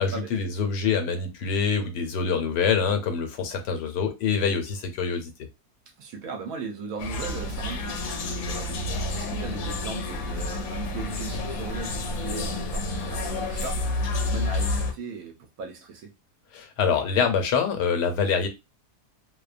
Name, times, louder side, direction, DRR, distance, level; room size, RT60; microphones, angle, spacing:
voice 1, 0.0-5.3 16.5-18.5, left 6 dB, 90° left, 1.2 m, -25 dB
voice 2, 6.0-16.1, right 5 dB, 65° right, 1.0 m, -38 dB
sound 1, 7.0-14.9, left 2 dB, 70° left, 1.0 m, -29 dB
2.7 x 2.1 x 2.4 m
omnidirectional pair, 1.7 m